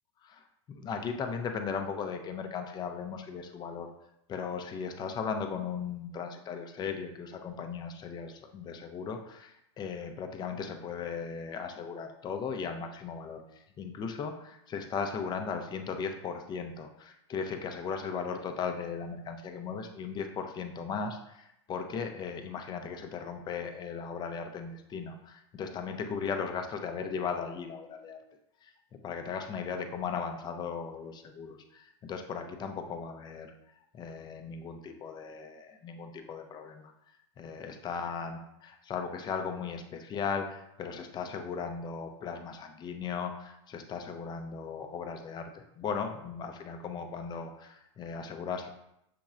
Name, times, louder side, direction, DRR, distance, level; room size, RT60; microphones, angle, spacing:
voice 1, 0.2-3.9 4.3-28.2 28.6-28.7 29.0-33.5 33.9-36.9 37.4-48.7, left 6 dB, 30° left, 5 dB, 0.6 m, -37 dB
6.8 x 3.0 x 2.5 m, 0.81 s
hypercardioid pair, 110°, 15 cm